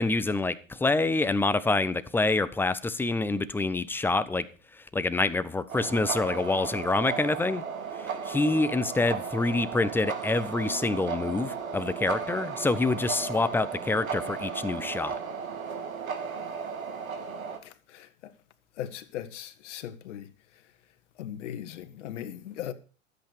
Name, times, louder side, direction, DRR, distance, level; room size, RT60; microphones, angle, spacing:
voice 1, 0.0-4.5 4.9-7.6 8.0-15.1, left 3 dB, 5° left, 0.7 m, -26 dB
sound 1, 5.7-17.6, right 6 dB, 80° right, 2.8 m, -35 dB
voice 2, 17.6-18.1 18.8-20.3 21.2-22.7, left 11 dB, 60° left, 1.7 m, -38 dB
13.0 x 8.2 x 6.7 m
hypercardioid pair, 110°, 41 cm